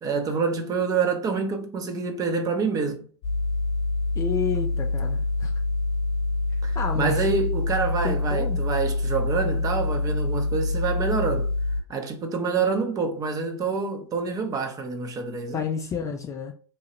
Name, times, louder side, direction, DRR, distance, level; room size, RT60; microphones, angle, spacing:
voice 1, 0.0-3.1 6.6-11.5 11.9-15.6, right 5 dB, 25° right, 0.6 m, -27 dB
sound 1, 3.2-11.8, left 2 dB, 45° left, 0.8 m, -26 dB
voice 2, 4.2-5.5 6.8-7.3 8.0-8.6 15.5-16.5, left 6 dB, 20° left, 0.4 m, -30 dB
3.0 x 2.3 x 2.9 m
hypercardioid pair, 105°, 15 cm